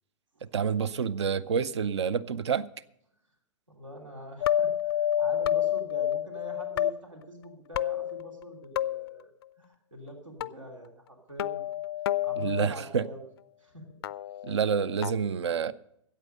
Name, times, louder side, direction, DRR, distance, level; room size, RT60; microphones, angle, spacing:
voice 1, 0.5-2.7 12.4-13.0 14.4-15.7, right 6 dB, 60° right, 0.5 m, -28 dB
voice 2, 3.7-9.3 9.6-11.7 12.2-13.2 13.6-13.8, right 1 dB, 85° right, 3.1 m, -45 dB
sound 1, 4.4-6.9 7.7-8.5 8.8-9.2 10.4-10.5 11.4-12.7 14.0-15.1, left 11 dB, 50° left, 0.4 m, -29 dB
14.0 x 8.5 x 6.5 m
figure-of-eight pair, 110°, 16 cm